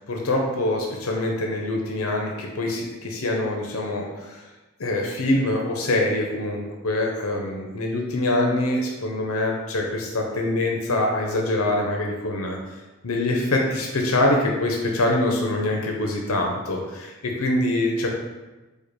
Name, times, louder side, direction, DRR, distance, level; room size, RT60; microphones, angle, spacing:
voice 1, 0.1-4.4 4.8-12.6 13.0-18.1, left 1 dB, 75° left, 1 dB, 0.7 m, -24 dB
4.9 x 2.3 x 4.7 m, 1.1 s
head